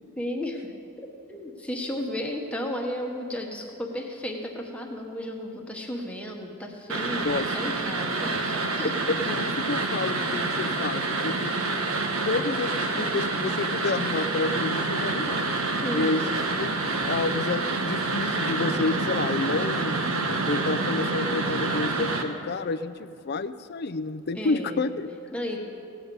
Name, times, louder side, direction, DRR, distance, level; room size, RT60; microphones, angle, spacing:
voice 1, 0.2-8.9 15.8-16.4 24.3-24.9 25.3-25.6, left 1 dB, 5° left, 0 dB, 1.1 m, -34 dB
sound 1, 6.9-22.2, right 3 dB, 85° right, 1.0 m, -27 dB
voice 2, 8.8-11.6 12.2-15.4 15.9-16.2 16.5-16.7 17.1-20.1 20.5-25.1, left 3 dB, 50° left, 11 dB, 0.4 m, -29 dB
17.5 x 8.6 x 5.4 m, 2.7 s
head